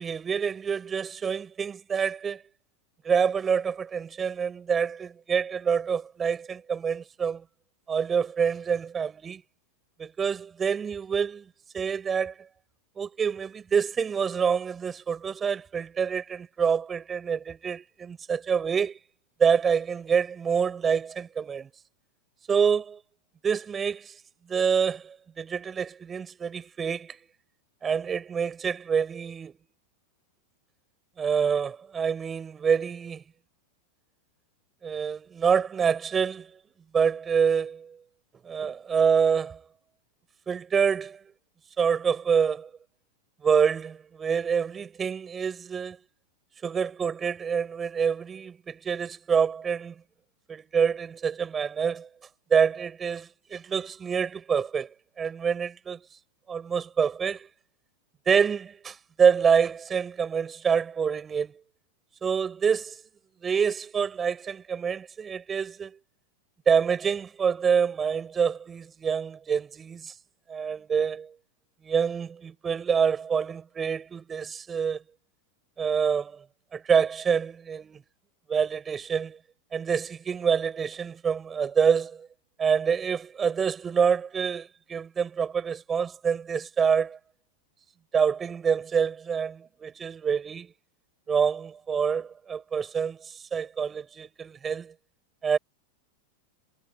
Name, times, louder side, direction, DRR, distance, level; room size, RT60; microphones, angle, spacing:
voice 1, 0.0-2.4 3.0-7.4 7.9-9.4 10.0-11.4 11.7-12.4 13.0-19.0 19.4-21.7 22.5-23.0 23.4-24.1 24.5-27.2 27.8-29.5 31.2-33.2 34.8-36.5 36.9-38.0 38.4-39.6 40.5-41.2 41.8-42.7 43.4-46.0 46.6-49.9 50.5-52.1 52.5-54.9 55.2-56.0 56.5-57.5 58.3-61.6 62.2-63.0 63.4-66.0 66.7-70.1 70.5-71.3 71.8-75.0 75.8-76.4 76.7-78.0 78.5-79.4 79.7-82.3 82.6-87.2 88.1-90.7 91.3-94.9 95.4-95.6, right 6 dB, 20° right, 6.1 m, -26 dB
figure-of-eight pair, 90°, 0 cm